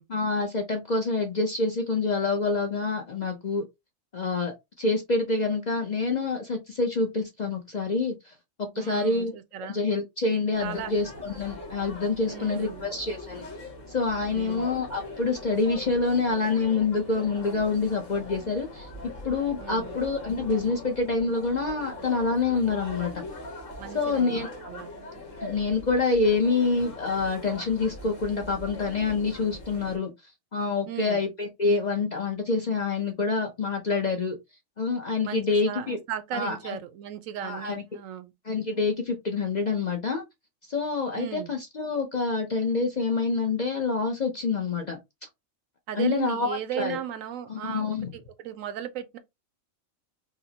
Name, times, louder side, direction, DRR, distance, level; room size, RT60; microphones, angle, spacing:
voice 1, 0.1-3.6 4.1-9.3 9.6-13.5 13.9-18.9 19.2-23.3 23.9-24.5 25.4-30.1 30.5-34.4 34.8-36.0 36.3-36.8 37.4-37.8 38.4-40.2 40.7-45.0 45.9-47.0 47.5-48.1, left 4 dB, 45° left, 0.6 m, -27 dB
voice 2, 8.7-9.8 10.3-10.9 12.3-12.9 14.3-14.7 19.6-20.0 23.8-24.9 30.9-31.2 35.2-38.3 41.1-41.5 45.9-49.2, right 10 dB, 80° right, 1.0 m, -36 dB
sound 1, 10.5-30.0, left 2 dB, 70° left, 1.6 m, -41 dB
4.9 x 2.0 x 2.7 m
omnidirectional pair, 1.4 m